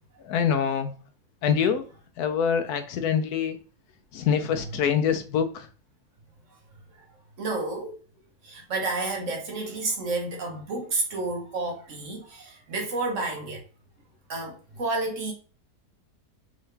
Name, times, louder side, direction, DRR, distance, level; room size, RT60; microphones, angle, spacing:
voice 1, 0.2-0.9 1.4-1.8 2.2-3.6 4.1-5.7, left 7 dB, 80° left, 1.1 m, -25 dB
voice 2, 7.4-8.0 8.4-13.6 14.3-15.3, right 3 dB, 55° right, 1.2 m, -30 dB
3.7 x 3.0 x 3.2 m
omnidirectional pair, 1.7 m